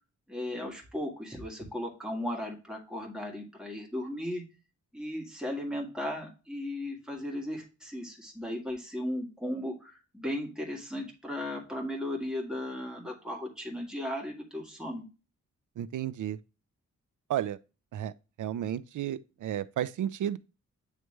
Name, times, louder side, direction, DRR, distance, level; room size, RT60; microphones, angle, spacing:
voice 1, 0.3-4.4 4.9-15.0, left 1 dB, ahead, 1.7 m, -36 dB
voice 2, 15.8-16.4 17.3-17.6 17.9-18.1 18.4-20.4, right 11 dB, 80° right, 0.5 m, -32 dB
9.1 x 3.2 x 3.2 m
wide cardioid pair, 145°, 30 cm